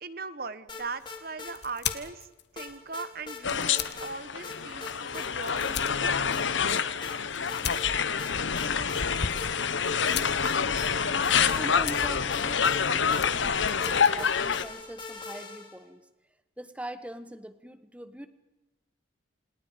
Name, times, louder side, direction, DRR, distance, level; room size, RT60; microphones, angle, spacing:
voice 1, 0.0-2.3 2.5-6.7, right 4 dB, 50° right, 13 dB, 1.2 m, -39 dB
sound 1, 0.7-1.5 1.9-2.0 2.6-3.4 3.7-4.1 4.4-5.3 5.6-5.7 6.3-7.2 7.5-7.9 8.2-9.7 10.1-15.8, left 4 dB, 25° left, 3.3 m, -42 dB
sound 2, 0.8-15.3, left 10 dB, 55° left, 1.4 m, -42 dB
sound 3, 3.4-14.6, left 6 dB, 75° left, 1.0 m, -27 dB
voice 2, 11.6-16.1 16.6-18.3, right 1 dB, 5° right, 10 dB, 1.3 m, -42 dB
28.0 x 28.0 x 5.2 m, 1.1 s
head